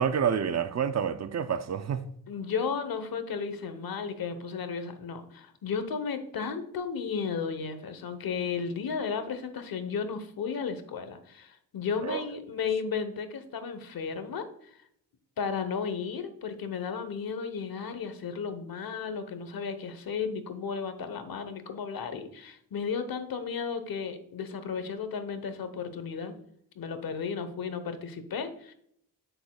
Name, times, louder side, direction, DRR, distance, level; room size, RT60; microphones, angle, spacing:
voice 1, 0.0-2.0 12.0-12.2, right 7 dB, 45° right, 0.5 m, -28 dB
voice 2, 2.3-14.8 15.4-26.3 26.7-28.7, left 6 dB, 70° left, 1.1 m, -34 dB
8.0 x 6.7 x 2.3 m
cardioid pair, 95°, 37 cm